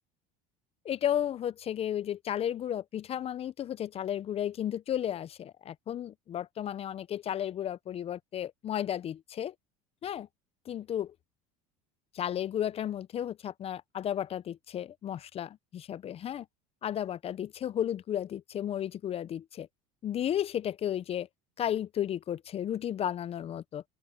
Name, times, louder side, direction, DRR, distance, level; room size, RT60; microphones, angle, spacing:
voice 1, 0.8-9.5 10.0-10.3 10.7-11.1 12.1-16.5 16.8-19.7 20.0-21.3 21.6-23.8, left 10 dB, 35° left, 0.6 m, -33 dB
open air
supercardioid pair, 100°, 17 cm